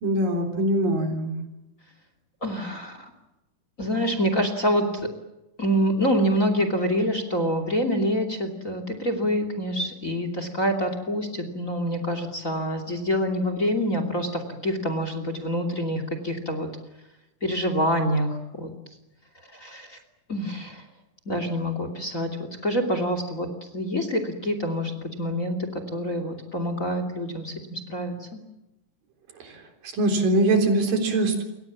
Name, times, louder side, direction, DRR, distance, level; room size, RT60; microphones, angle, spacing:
voice 1, 0.0-1.4 30.0-31.4, right 1 dB, 75° right, 5 dB, 5.4 m, -22 dB
voice 2, 2.4-3.0 3.8-5.1 5.6-16.7 17.4-18.7 19.5-20.0 20.3-20.8 21.3-22.3 22.6-23.5 23.7-28.4, equal, 25° left, 8 dB, 2.8 m, -26 dB
28.5 x 24.0 x 7.3 m, 0.96 s
omnidirectional pair, 4.0 m